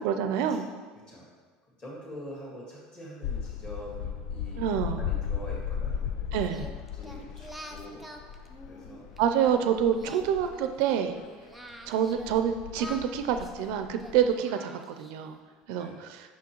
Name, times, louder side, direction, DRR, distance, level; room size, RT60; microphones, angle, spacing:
voice 1, 0.0-0.7 4.6-5.1 6.3-6.7 9.2-11.2 11.9-15.4 15.7-15.9, right 8 dB, 70° right, 7 dB, 0.4 m, -27 dB
voice 2, 1.8-6.3 6.9-8.1 8.7-9.1 10.0-10.1 15.7-16.0, equal, 25° left, -5 dB, 1.7 m, -45 dB
sound 1, 3.2-11.3 11.9-14.4, left 8 dB, 70° left, 0.3 m, -36 dB
Singing, 6.4-9.5 9.9-12.4 12.7-15.3, equal, ahead, 0.4 m, -46 dB
6.1 x 5.8 x 3.0 m, 1.4 s
cardioid pair, 165°, 3 cm